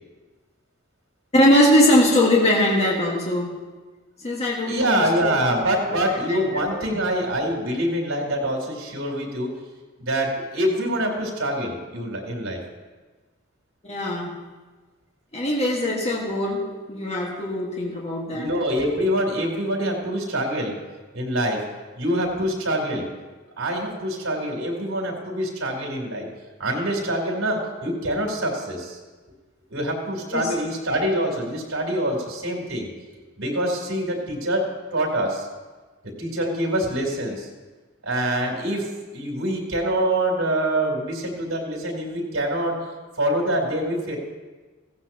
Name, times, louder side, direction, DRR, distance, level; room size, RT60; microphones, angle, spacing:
voice 1, 1.3-3.5 4.2-6.0 6.3-6.8 13.8-14.4 15.3-18.5 30.3-30.5, left 1 dB, 30° left, -3 dB, 1.8 m, -21 dB
voice 2, 4.7-9.5 10.0-12.6 18.3-20.8 21.1-21.6 22.0-23.1 23.6-26.3 26.6-29.0 29.7-32.9 33.4-34.7 34.9-35.5 36.2-37.5 38.0-38.9 39.1-42.8 43.2-44.2, right 1 dB, 80° right, 0 dB, 3.8 m, -25 dB
16.5 x 15.0 x 3.0 m, 1.3 s
head